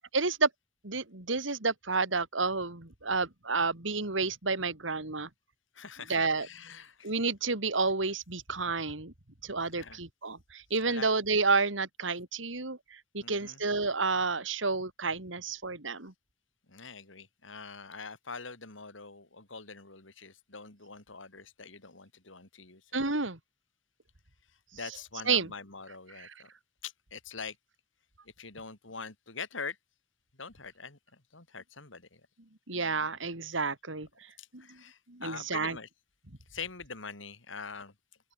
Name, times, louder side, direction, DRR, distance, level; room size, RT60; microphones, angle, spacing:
voice 1, 0.1-0.5 0.8-5.3 6.1-6.5 7.0-9.1 9.4-12.8 13.1-16.1 22.9-23.4 25.3-25.5 26.2-26.3 32.7-34.1 34.5-34.6 35.1-35.8, right 4 dB, 85° right, 3.3 m, -30 dB
voice 2, 5.8-7.1 9.7-10.0 10.9-11.1 13.2-13.6 16.7-23.1 24.7-26.5 26.8-27.6 28.4-29.8 30.4-32.2 34.4-35.9 36.5-37.9, left 5 dB, 90° left, 3.8 m, -44 dB
open air
head